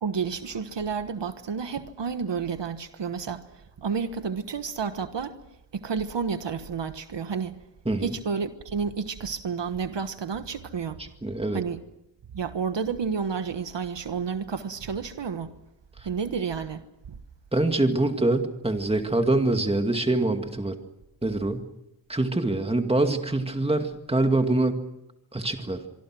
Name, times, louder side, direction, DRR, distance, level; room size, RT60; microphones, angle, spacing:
voice 1, 0.0-5.4 5.7-7.6 8.0-11.0 11.5-11.8 12.3-15.5 16.0-16.8 17.1-17.2, right 6 dB, 65° right, 1.4 m, -30 dB
voice 2, 11.0-11.6 17.5-20.8 21.2-21.6 22.1-24.8 25.3-25.8, right 2 dB, 15° right, 2.2 m, -24 dB
25.0 x 24.5 x 6.2 m
wide cardioid pair, 140°, 45 cm